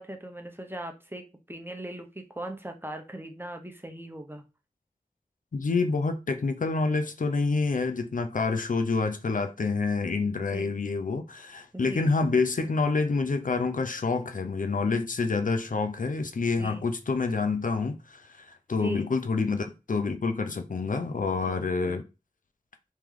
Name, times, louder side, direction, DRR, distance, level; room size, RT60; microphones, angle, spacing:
voice 1, 0.0-4.4 10.5-10.7 11.7-12.1 16.6-16.8 18.8-19.1 21.4-22.0, right 1 dB, 15° right, 0.9 m, -39 dB
voice 2, 5.5-22.0, left 4 dB, 65° left, 0.5 m, -27 dB
3.2 x 3.0 x 3.7 m
wide cardioid pair, 40°, 15 cm